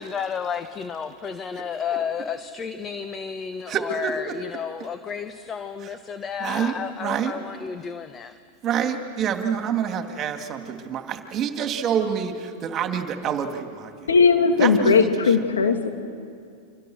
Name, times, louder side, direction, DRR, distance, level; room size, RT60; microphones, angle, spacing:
voice 1, 0.0-8.3, left 6 dB, 25° left, 10 dB, 1.2 m, -32 dB
voice 2, 3.7-4.4 6.4-7.4 8.6-14.1 14.6-15.3, right 8 dB, 35° right, 6 dB, 2.6 m, -27 dB
voice 3, 14.1-15.9, left 5 dB, 85° left, 5 dB, 2.6 m, -18 dB
29.5 x 26.0 x 6.6 m, 2.3 s
hypercardioid pair, 100°, 0 cm